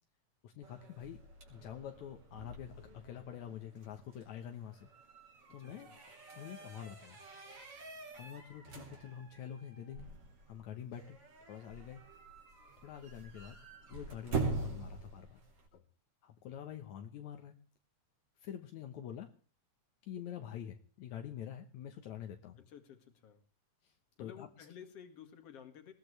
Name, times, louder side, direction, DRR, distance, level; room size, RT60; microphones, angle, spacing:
voice 1, 0.4-1.2 1.5-4.9 5.5-5.9 6.3-7.2 8.1-10.1 10.5-11.2 11.5-12.0 12.8-13.6 13.9-15.4 15.7-15.8 16.2-17.5 18.4-19.3 20.0-22.6 23.8-24.5, left 9 dB, 75° left, 4 dB, 2.4 m, -46 dB
sound 1, 0.6-15.7, right 4 dB, 50° right, 4.1 m, -45 dB
voice 2, 5.6-6.0 22.7-23.4 24.2-25.9, left 8 dB, 55° left, 6 dB, 2.9 m, -53 dB
20.5 x 16.5 x 3.3 m, 0.38 s
omnidirectional pair, 3.4 m